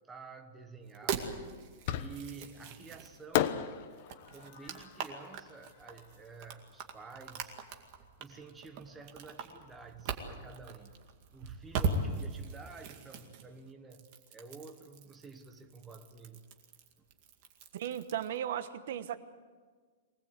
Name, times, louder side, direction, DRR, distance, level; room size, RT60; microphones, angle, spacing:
voice 1, 0.1-1.5 1.9-3.6 4.3-7.6 8.2-11.0 11.3-16.5, right 4 dB, 10° right, 5 dB, 1.1 m, -50 dB
sound 1, 0.8-3.3 3.9-18.4, right 4 dB, 35° right, 2.2 m, -41 dB
Fireworks, 1.9-2.5 3.3-6.5, left 11 dB, 40° left, 1.0 m, -36 dB
voice 2, 17.7-19.2, right 10 dB, 55° right, 11 dB, 1.2 m, -36 dB
24.0 x 19.0 x 8.3 m, 1.5 s
supercardioid pair, 175°, 0 cm